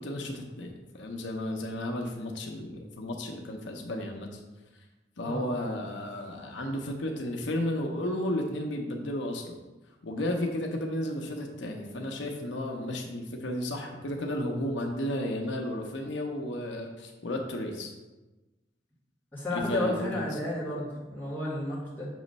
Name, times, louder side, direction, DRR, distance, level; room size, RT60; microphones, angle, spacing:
voice 1, 0.0-4.4 5.2-9.6 10.0-17.9 19.5-20.4, left 1 dB, 85° left, 2 dB, 0.7 m, -33 dB
voice 2, 19.3-22.1, left 1 dB, 10° left, -8 dB, 1.8 m, -33 dB
6.3 x 3.1 x 5.3 m, 1.2 s
head